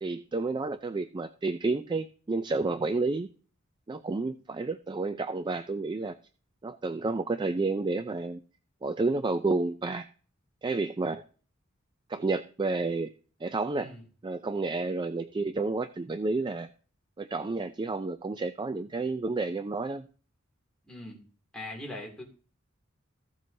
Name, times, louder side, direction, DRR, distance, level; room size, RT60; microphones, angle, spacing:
voice 1, 0.0-3.3 3.9-6.2 6.6-8.4 8.8-10.1 10.6-11.2 12.1-13.1 13.4-13.9 14.2-16.7 17.2-20.0, right 3 dB, 20° right, 10 dB, 0.4 m, -30 dB
voice 2, 20.9-21.2 21.5-22.2, left 1 dB, 5° left, -1 dB, 2.5 m, -41 dB
15.0 x 7.5 x 2.7 m, 0.39 s
head